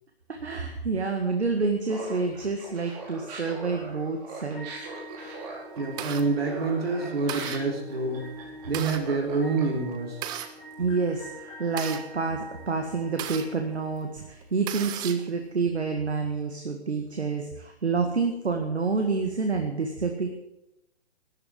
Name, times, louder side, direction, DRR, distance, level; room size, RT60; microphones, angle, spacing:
voice 1, 0.3-4.7 10.8-20.3, right 4 dB, 80° right, 4 dB, 2.0 m, -28 dB
Laughter, 1.9-9.9, right 3 dB, 40° right, 4.9 m, -41 dB
sound 1, 4.5-14.6, left 1 dB, 15° left, 6.6 m, -45 dB
sound 2, 5.3-6.2 6.8-6.9 7.3-7.6 8.4-9.0 9.9-10.5 11.3-13.5 14.0-14.1 14.4-15.3, right 11 dB, 15° right, 0.6 m, -35 dB
voice 2, 5.8-8.3 8.7-10.2, right 4 dB, 65° right, 1 dB, 3.5 m, -27 dB
13.0 x 11.0 x 7.6 m, 0.90 s
figure-of-eight pair, 130°, 32 cm